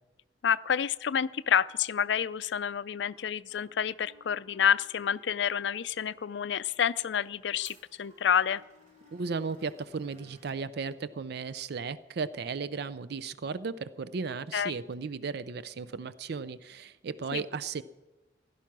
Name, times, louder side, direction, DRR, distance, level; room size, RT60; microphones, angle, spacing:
voice 1, 0.4-8.6 14.5-14.7 17.3-17.4, left 8 dB, 70° left, 17 dB, 0.4 m, -28 dB
Wind instrument woodwind instrument, 3.0-10.5, left 1 dB, 25° right, 5.2 m, -62 dB
Glass, 5.0-11.3, right 2 dB, 40° right, 3.3 m, -63 dB
voice 2, 9.1-17.8, right 5 dB, 60° right, 15 dB, 0.4 m, -35 dB
16.0 x 11.5 x 6.0 m, 1.1 s
head